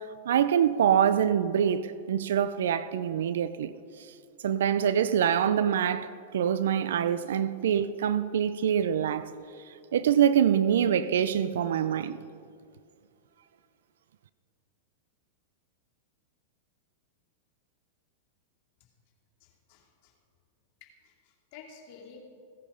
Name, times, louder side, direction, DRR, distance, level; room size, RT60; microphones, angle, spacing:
voice 1, 0.0-3.7 4.4-9.3 9.9-12.2, right 9 dB, 75° right, 0.5 m, -25 dB
voice 2, 19.4-20.1 20.8-22.2, left 6 dB, 55° left, 2.5 m, -52 dB
16.5 x 10.0 x 5.4 m
hypercardioid pair, 110°, 0 cm